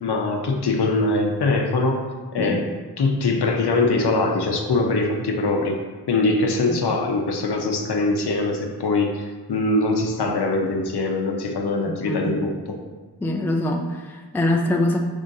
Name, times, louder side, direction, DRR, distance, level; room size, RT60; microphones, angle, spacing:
voice 1, 0.0-2.1 2.3-2.7 3.0-5.8 6.1-12.8, left 3 dB, 70° left, 2 dB, 0.7 m, -22 dB
voice 2, 13.2-15.0, left 1 dB, 5° left, 2 dB, 0.3 m, -23 dB
5.2 x 3.5 x 2.6 m, 1.3 s
wide cardioid pair, 80°, 41 cm